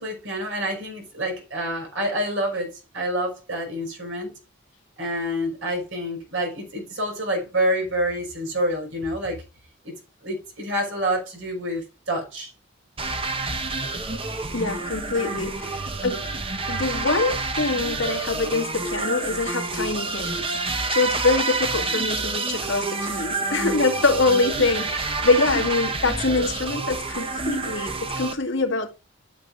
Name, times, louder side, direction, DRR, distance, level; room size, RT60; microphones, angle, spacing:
voice 1, 0.0-4.3 5.0-9.4 9.8-9.9 10.2-12.5 21.8-21.9 25.5-25.7, equal, 60° right, 5.6 m, -27 dB
sound 1, 13.0-28.3, right 3 dB, 25° right, 1.1 m, -28 dB
voice 2, 14.5-16.3 16.7-20.5 20.9-28.9, left 3 dB, 60° left, 2.2 m, -24 dB
13.0 x 7.2 x 2.6 m
head